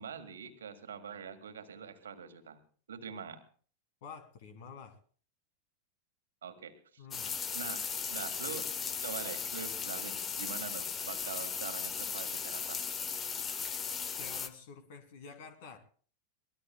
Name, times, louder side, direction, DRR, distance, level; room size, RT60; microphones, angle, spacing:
voice 1, 0.0-2.6 2.9-3.4 6.4-7.0 7.5-7.8 8.1-8.7 9.0-12.8, right 7 dB, 65° right, 8 dB, 1.7 m, -44 dB
voice 2, 4.0-5.0 7.0-7.3 14.2-15.8, left 6 dB, 50° left, 8 dB, 2.6 m, -49 dB
sound 1, 7.1-14.5, left 6 dB, 25° left, 1.1 m, -37 dB
23.0 x 19.5 x 2.3 m, 0.43 s
figure-of-eight pair, 90°, 0 cm